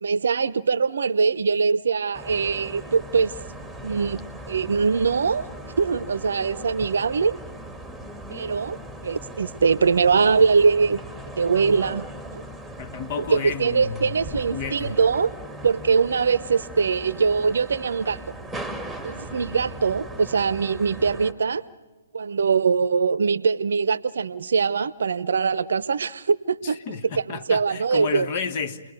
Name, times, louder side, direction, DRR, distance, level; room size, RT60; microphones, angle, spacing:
voice 1, 0.0-3.3 3.8-5.5 5.8-7.4 8.3-11.0 11.4-12.0 12.3-12.4 13.3-15.3 15.6-18.2 19.0-21.6 22.1-26.8 27.2-28.3, right 5 dB, 65° right, 19 dB, 0.8 m, -22 dB
sound 1, 2.1-21.3, right 1 dB, ahead, 2.0 m, -39 dB
voice 2, 12.8-15.0 26.6-28.9, left 6 dB, 40° left, 9 dB, 1.6 m, -32 dB
29.5 x 21.5 x 9.1 m, 1.2 s
figure-of-eight pair, 130°, 0 cm